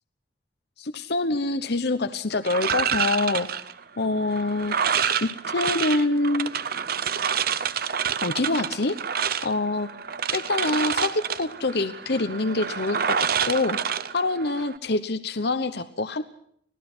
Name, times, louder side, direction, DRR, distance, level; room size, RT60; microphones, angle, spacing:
voice 1, 0.8-3.6 4.0-6.5 8.2-9.0 9.4-9.9 10.3-13.8 14.1-16.2, left 2 dB, 60° left, 10 dB, 1.1 m, -26 dB
sound 1, 2.5-14.8, right 7 dB, 55° right, 0.8 m, -28 dB
25.5 x 17.5 x 6.2 m, 0.66 s
head